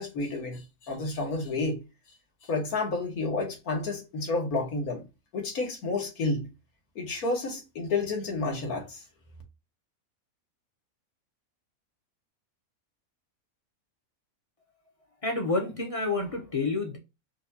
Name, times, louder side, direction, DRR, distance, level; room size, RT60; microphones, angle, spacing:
voice 1, 0.0-1.8 2.5-5.1 5.3-6.5 7.0-9.0, left 3 dB, 80° left, 1.7 m, -30 dB
voice 2, 15.2-17.0, left 3 dB, 35° left, 0.6 m, -29 dB
5.1 x 2.3 x 2.6 m
omnidirectional pair, 1.5 m